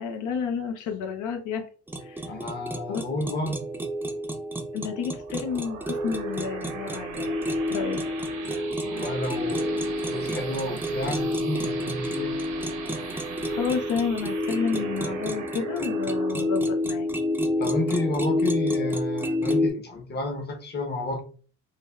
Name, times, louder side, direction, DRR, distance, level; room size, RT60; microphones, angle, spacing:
voice 1, 0.0-1.7 2.0-2.3 2.9-3.0 4.7-7.4 7.7-8.0 13.1-17.1, left 6 dB, 75° left, 0.6 m, -30 dB
sound 1, 1.9-19.7, left 1 dB, 5° right, 0.4 m, -29 dB
voice 2, 2.2-3.7 8.8-12.4 17.6-21.2, left 1 dB, 35° left, 0.8 m, -31 dB
sound 2, 5.1-18.3, right 6 dB, 85° right, 0.8 m, -40 dB
3.3 x 2.2 x 2.2 m
cardioid pair, 90°, 30 cm